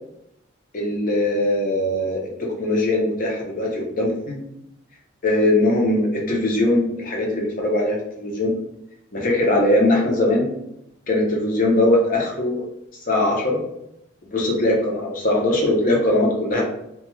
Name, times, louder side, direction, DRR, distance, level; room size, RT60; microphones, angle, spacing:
voice 1, 0.7-2.2 2.6-4.4 5.2-8.5 9.1-10.5 11.1-12.6 13.1-13.6 14.3-16.6, left 1 dB, 45° left, -1 dB, 0.7 m, -20 dB
2.3 x 2.3 x 3.0 m, 0.81 s
head